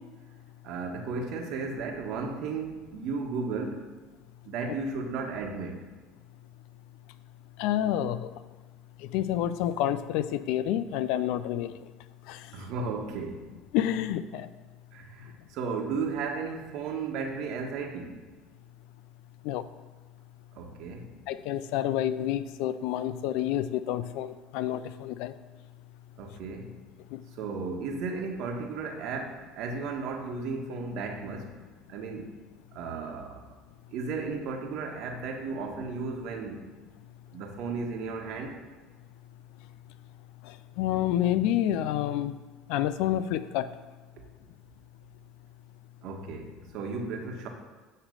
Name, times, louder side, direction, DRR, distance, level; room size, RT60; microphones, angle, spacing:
voice 1, 0.6-3.9 4.4-5.9 12.5-13.5 14.9-18.2 20.5-21.1 26.2-26.7 27.3-31.6 31.9-32.3 32.7-33.5 33.9-36.7 37.3-38.6 46.0-47.5, right 4 dB, 65° right, 3 dB, 1.3 m, -34 dB
voice 2, 7.6-8.3 9.1-11.7 12.3-12.4 13.7-14.5 19.4-19.6 21.3-25.3 27.1-27.2 40.8-42.3 42.7-43.7, left 11 dB, 75° left, 13 dB, 0.4 m, -28 dB
9.6 x 3.3 x 6.5 m, 1.3 s
supercardioid pair, 90°, 0 cm